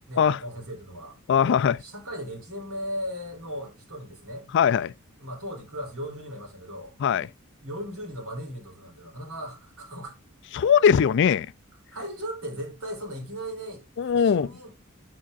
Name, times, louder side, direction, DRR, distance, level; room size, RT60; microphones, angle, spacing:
voice 1, 0.1-4.5 5.2-6.9 7.6-10.2 11.9-13.8 14.1-14.7, equal, 80° right, 3.3 m, -37 dB
voice 2, 1.3-1.8 4.5-4.9 7.0-7.3 10.5-11.5 14.0-14.5, left 7 dB, 55° left, 0.3 m, -20 dB
8.4 x 7.1 x 2.5 m
head